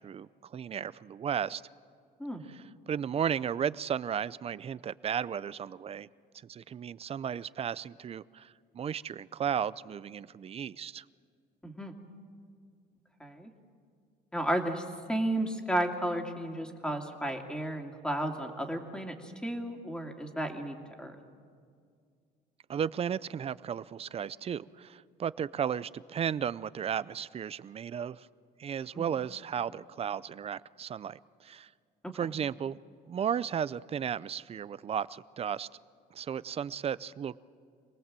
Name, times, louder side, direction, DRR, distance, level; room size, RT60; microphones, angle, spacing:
voice 1, 0.0-1.6 2.5-6.1 6.4-11.0 22.7-28.3 28.6-31.7 32.1-32.8 33.1-35.7 36.1-37.4, right 8 dB, 35° right, 18 dB, 0.5 m, -34 dB
voice 2, 11.6-11.9 13.2-13.5 14.3-21.2 28.9-29.0 32.0-32.1, right 1 dB, 5° left, 3 dB, 2.6 m, -33 dB
26.5 x 19.0 x 7.6 m, 2.2 s
cardioid pair, 110°, 17 cm